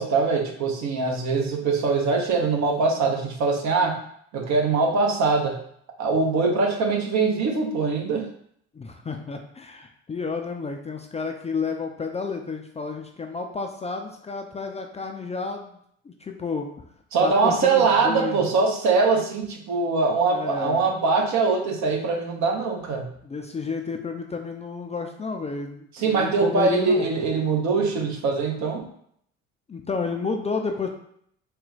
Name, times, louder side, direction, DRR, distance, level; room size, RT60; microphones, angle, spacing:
voice 1, 0.0-4.0 4.3-5.6 6.0-8.3 17.1-23.1 25.9-28.8, right 4 dB, 50° right, 2 dB, 1.0 m, -22 dB
voice 2, 8.7-15.8 16.0-16.7 17.2-18.4 20.3-20.9 23.2-27.1 29.7-30.9, left 4 dB, 20° left, 3 dB, 0.4 m, -31 dB
4.2 x 2.2 x 4.0 m, 0.68 s
hypercardioid pair, 60°, 35 cm